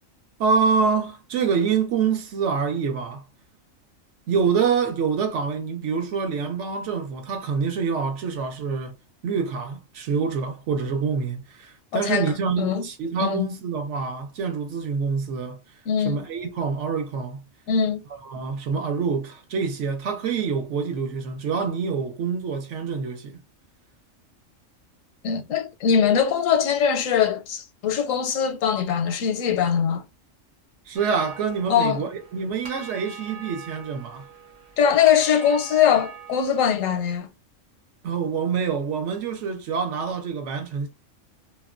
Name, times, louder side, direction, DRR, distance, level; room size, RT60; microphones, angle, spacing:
voice 1, 0.4-3.2 4.3-8.9 9.2-15.6 16.0-17.4 18.3-23.4 30.9-34.3 38.0-40.9, right 5 dB, 70° right, 0.9 m, -26 dB
voice 2, 11.9-12.9 13.2-13.5 15.9-16.2 17.7-18.0 25.2-30.0 31.7-32.0 34.8-37.3, left 8 dB, 85° left, 1.0 m, -22 dB
sound 1, 31.0-37.2, right 5 dB, 35° right, 0.7 m, -43 dB
2.4 x 2.1 x 2.4 m
omnidirectional pair, 1.3 m